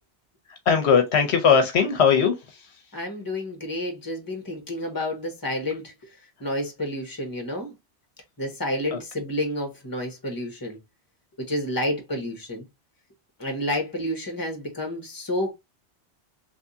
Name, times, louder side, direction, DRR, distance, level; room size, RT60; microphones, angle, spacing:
voice 1, 0.5-2.7 8.9-9.0, left 6 dB, 70° left, 1.0 m, -20 dB
voice 2, 2.9-5.9 6.4-7.7 8.4-10.8 11.4-12.6 13.4-15.5, left 1 dB, 20° left, 1.2 m, -30 dB
3.5 x 3.2 x 2.7 m
omnidirectional pair, 1.2 m